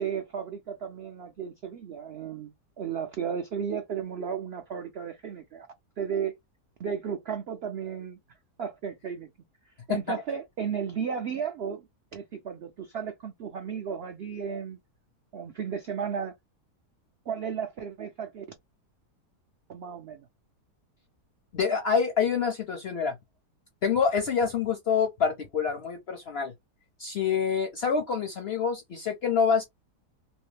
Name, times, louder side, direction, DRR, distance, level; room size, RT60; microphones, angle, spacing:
voice 1, 0.0-5.7 6.0-6.3 6.8-8.2 8.6-9.3 9.7-11.9 12.1-14.8 15.3-16.3 17.3-18.4 19.7-20.3, right 7 dB, 80° right, 0.5 m, -34 dB
voice 2, 9.9-10.2 21.5-23.1 23.8-26.5 27.0-29.6, left 6 dB, 60° left, 0.6 m, -26 dB
3.0 x 2.8 x 3.2 m
omnidirectional pair, 1.7 m